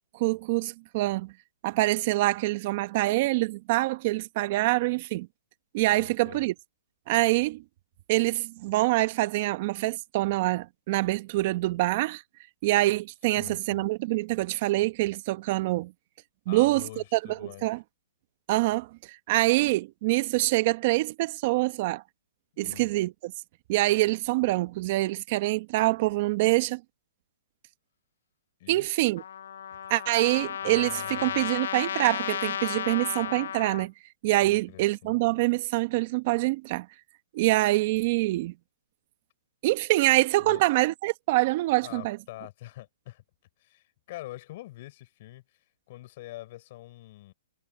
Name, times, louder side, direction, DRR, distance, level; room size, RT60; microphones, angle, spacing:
voice 1, 0.1-1.3 1.6-5.3 5.7-6.5 7.1-7.6 8.1-12.2 12.6-15.9 16.5-17.8 18.5-22.0 22.6-23.3 23.7-26.8 28.7-29.2 29.9-33.9 34.2-36.9 37.3-38.5 39.6-42.2, right 19 dB, 40° right, 1.1 m, -25 dB
voice 2, 6.0-6.4 13.3-13.9 16.5-17.7 22.5-22.9 28.6-28.9 30.6-31.5 34.4-35.1 40.4-40.6 41.8-43.2 43.6-45.6 45.9-47.3, left 17 dB, 45° left, 5.8 m, -45 dB
Trumpet, 29.2-33.9, left 9 dB, 70° left, 0.5 m, -33 dB
hypercardioid pair, 150°, 0 cm